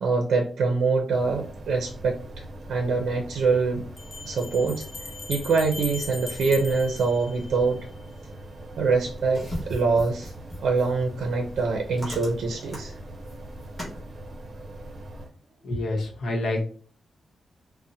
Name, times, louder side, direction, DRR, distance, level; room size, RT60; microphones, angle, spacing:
voice 1, 0.0-2.4 2.7-3.8 4.2-4.9 5.3-7.8 8.8-10.3 10.6-13.0, right 4 dB, 75° right, 2 dB, 0.5 m, -24 dB
sound 1, 1.1-15.3, right 1 dB, 40° right, 0.7 m, -42 dB
Bell, 2.3-2.4 4.0-7.9, left 4 dB, 40° left, 0.6 m, -39 dB
sound 2, 8.9-14.0, equal, ahead, 1.4 m, -39 dB
voice 2, 15.6-16.6, left 2 dB, 65° left, 2 dB, 0.9 m, -27 dB
4.1 x 2.1 x 2.7 m, 0.43 s
wide cardioid pair, 180°, 0 cm